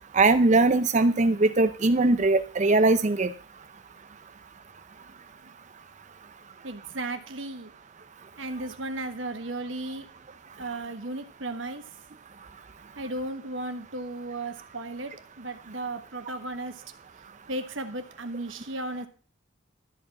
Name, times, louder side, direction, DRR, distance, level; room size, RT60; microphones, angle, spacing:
voice 1, 0.1-3.3, right 3 dB, 40° right, 11 dB, 0.6 m, -21 dB
voice 2, 6.6-7.7 8.4-10.1 10.6-11.9 13.0-16.8 17.5-19.1, right 2 dB, 75° right, 7 dB, 1.4 m, -35 dB
13.0 x 5.1 x 7.2 m, 0.39 s
head